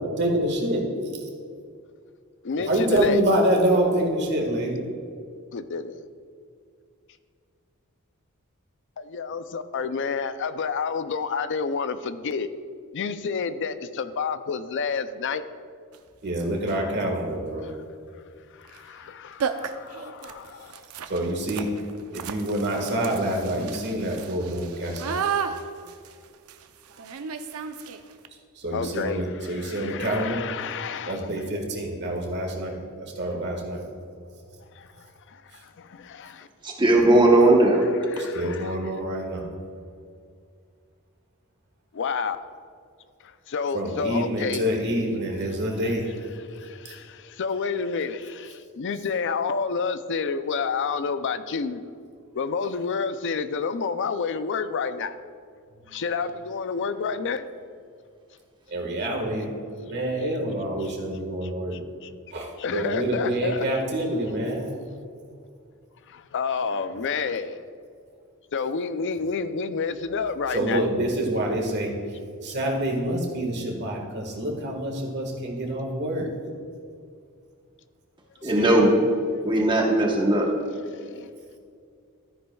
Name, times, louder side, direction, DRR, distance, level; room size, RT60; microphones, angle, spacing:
voice 1, 0.2-0.9 1.1-1.2 2.7-4.8 16.2-17.7 21.1-21.7 22.1-25.2 28.5-30.4 31.1-33.8 38.2-39.4 43.7-46.1 46.8-46.9 58.7-59.5 59.8-61.8 62.3-64.7 70.5-71.9 72.4-76.3 78.4-78.7, right 1 dB, 50° right, 1 dB, 1.6 m, -26 dB
voice 2, 2.4-3.2 5.5-6.1 9.0-12.5 12.9-15.4 17.6-17.7 18.5-20.8 28.7-31.3 34.8-36.5 38.1-38.8 41.9-42.4 43.2-44.6 46.5-51.8 52.3-55.1 55.9-57.5 60.8-60.9 61.4-62.1 62.6-63.7 66.1-67.6 68.5-70.8 78.6-78.7 79.3-79.4 80.9-81.3, left 5 dB, 60° left, 12 dB, 0.4 m, -30 dB
sound 1, 15.9-16.0 16.6-16.9 18.6-18.8 19.1-19.2 19.4-28.3, right 7 dB, 90° right, 0.6 m, -34 dB
voice 3, 36.6-37.8 78.4-78.9 79.4-80.5, right 1 dB, 20° right, -1 dB, 1.0 m, -18 dB
13.5 x 9.5 x 2.3 m, 2.3 s
head